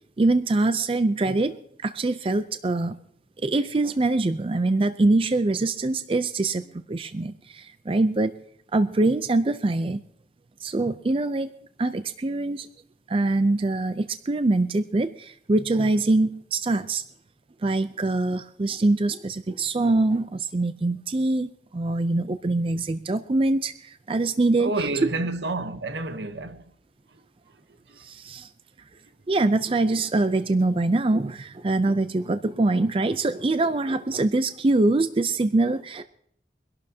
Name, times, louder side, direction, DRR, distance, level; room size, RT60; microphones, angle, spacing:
voice 1, 0.2-1.5 1.8-3.0 3.4-8.3 8.7-10.0 10.6-11.5 11.8-12.7 13.1-17.0 17.6-24.9 28.0-28.5 29.3-36.0, right 2 dB, 30° right, 0.4 m, -24 dB
voice 2, 24.6-26.6, right 2 dB, 75° right, 0.9 m, -29 dB
24.0 x 12.0 x 2.8 m
head